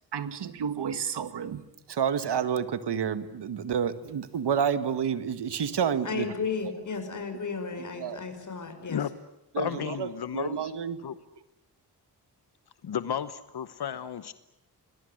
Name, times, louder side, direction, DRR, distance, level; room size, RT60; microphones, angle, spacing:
voice 1, 0.1-1.6 1.9-6.3 6.6-6.7 7.7-8.2 9.5-11.0, right 7 dB, 90° right, 12 dB, 1.8 m, -30 dB
voice 2, 6.0-9.0, left 5 dB, 50° left, 7 dB, 5.5 m, -34 dB
voice 3, 9.5-10.7 11.0-11.1 12.8-14.3, left 9 dB, 75° left, 13 dB, 1.0 m, -33 dB
26.5 x 21.5 x 9.8 m, 0.89 s
wide cardioid pair, 105°, 39 cm